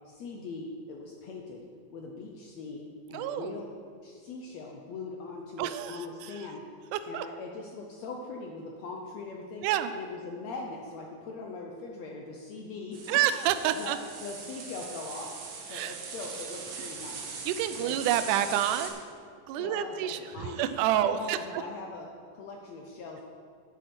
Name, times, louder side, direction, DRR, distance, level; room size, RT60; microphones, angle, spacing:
voice 1, 0.0-1.6 1.9-3.7 4.0-6.6 7.1-9.7 9.9-13.2 13.7-13.9 14.2-15.4 15.7-17.3 17.8-18.1 19.6-20.7 21.0-23.2, left 3 dB, 75° left, 1 dB, 1.6 m, -41 dB
voice 2, 3.1-3.6 5.6-6.5 6.9-7.3 9.6-9.9 13.1-14.0 15.7-16.0 17.5-19.0 19.5-21.4, right 11 dB, 85° right, 11 dB, 1.9 m, -28 dB
sound 1, 12.9-18.9, right 5 dB, 60° right, 2.3 m, -41 dB
9.8 x 8.4 x 6.0 m, 2.1 s
omnidirectional pair, 4.1 m